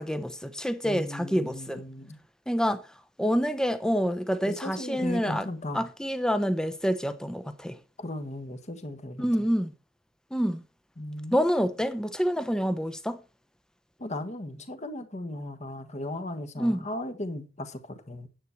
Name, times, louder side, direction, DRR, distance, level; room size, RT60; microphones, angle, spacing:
voice 1, 0.0-1.8 2.5-2.8 3.2-5.5 5.7-7.7 9.2-9.7 10.3-10.6 11.3-13.2 16.6-16.9, equal, 5° left, 0.7 m, -27 dB
voice 2, 0.8-2.2 4.4-5.9 8.0-9.3 11.0-11.4 14.0-18.3, left 1 dB, 30° left, 1.4 m, -36 dB
9.8 x 8.4 x 4.5 m
head